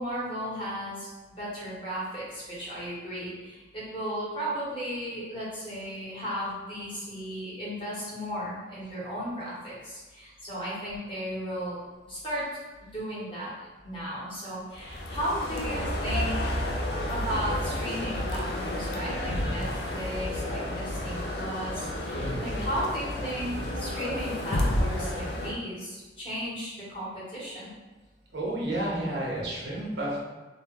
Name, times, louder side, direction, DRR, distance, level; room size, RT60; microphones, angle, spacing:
voice 1, 0.0-11.8 12.1-12.5 12.8-16.5 16.9-27.7, equal, 30° left, -9 dB, 1.2 m, -35 dB
sound 1, 14.7-25.5, left 1 dB, 60° left, 0.4 m, -31 dB
voice 2, 22.1-22.7 28.3-30.2, right 1 dB, 85° right, -5 dB, 0.9 m, -31 dB
2.7 x 2.2 x 3.6 m, 1.2 s
head